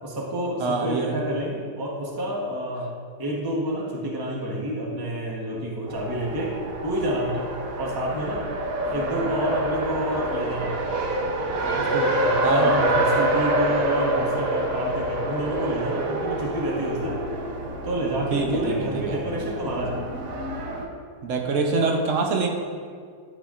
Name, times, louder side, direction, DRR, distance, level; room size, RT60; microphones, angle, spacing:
voice 1, 0.0-2.9 3.2-6.5 6.8-7.4 7.8-8.5 8.8-10.7 11.5-17.2 17.8-20.1, equal, 30° right, -4 dB, 0.4 m, -28 dB
voice 2, 0.6-1.1 12.4-12.7 18.3-19.2 21.2-22.5, right 3 dB, 85° right, 1 dB, 0.6 m, -25 dB
Race car auto racing, 5.9-20.8, right 1 dB, 60° right, 0.9 m, -27 dB
12.0 x 5.7 x 2.4 m, 2.1 s
omnidirectional pair, 2.2 m